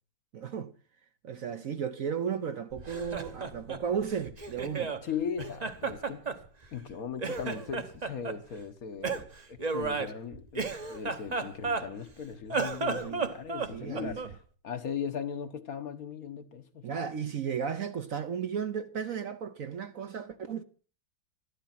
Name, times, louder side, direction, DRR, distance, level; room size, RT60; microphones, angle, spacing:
voice 1, 0.3-0.7 1.2-4.9 13.0-13.3 13.7-14.2 16.8-20.6, right 7 dB, 55° right, 1.1 m, -34 dB
Laughter, 2.7-5.0 5.4-6.9 7.2-8.4 9.0-12.1 12.4-14.4, right 4 dB, 30° right, 0.9 m, -33 dB
voice 2, 5.0-6.2 6.7-10.6 10.9-14.4 14.6-16.9, left 7 dB, 55° left, 1.4 m, -38 dB
13.5 x 12.0 x 5.7 m
omnidirectional pair, 2.0 m